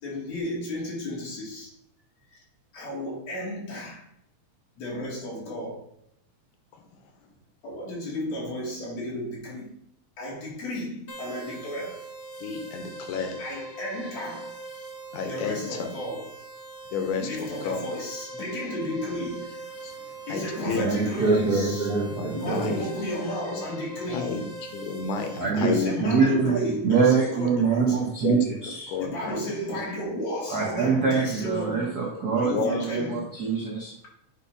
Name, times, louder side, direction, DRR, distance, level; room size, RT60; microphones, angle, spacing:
voice 1, 0.0-1.7 2.3-2.4 2.7-4.1 4.8-5.8 7.6-9.8 10.2-12.1 13.4-14.5 15.2-16.3 17.2-19.5 20.3-21.9 22.3-24.5 25.4-28.1 29.0-32.0 32.4-33.2, equal, 60° left, -4 dB, 3.3 m, -33 dB
sound 1, 11.1-25.4, right 2 dB, 35° left, 0.9 m, -41 dB
voice 2, 12.4-13.4 15.1-15.9 16.9-17.8 19.1-19.3 19.8-19.9 20.3-20.9 21.3-22.9 23.5-23.6 24.1-25.9 28.2-28.4 28.9-29.8 30.8-31.2 32.3-32.8, left 5 dB, 90° left, 5 dB, 2.4 m, -32 dB
voice 3, 20.6-22.8 25.3-25.7 26.0-28.9 30.5-33.9, right 5 dB, 75° right, -3 dB, 0.8 m, -24 dB
8.1 x 2.8 x 5.4 m, 0.73 s
omnidirectional pair, 3.4 m